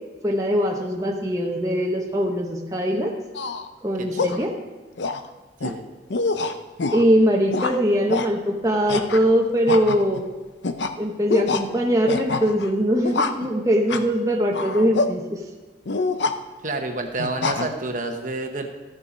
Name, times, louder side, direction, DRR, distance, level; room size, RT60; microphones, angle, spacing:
voice 1, 0.2-3.1 3.8-4.5 6.9-10.3 11.0-15.4, equal, 20° right, 0 dB, 0.9 m, -21 dB
sound 1, 3.3-3.7 4.2-4.4 5.0-5.3 5.6-5.7 6.1-7.0 7.5-7.8 8.1-8.3 8.9-9.3 9.7-10.2 10.6-10.9 11.3-11.6 12.1-12.7 13.0-13.5 13.9-14.1 14.5-15.1 15.9-16.3 17.2-17.7, left 3 dB, 75° left, 0.6 m, -25 dB
voice 2, 4.0-4.5 5.6-5.9 16.6-18.7, right 2 dB, 45° right, 4 dB, 1.0 m, -29 dB
14.0 x 7.1 x 5.1 m, 1.3 s
head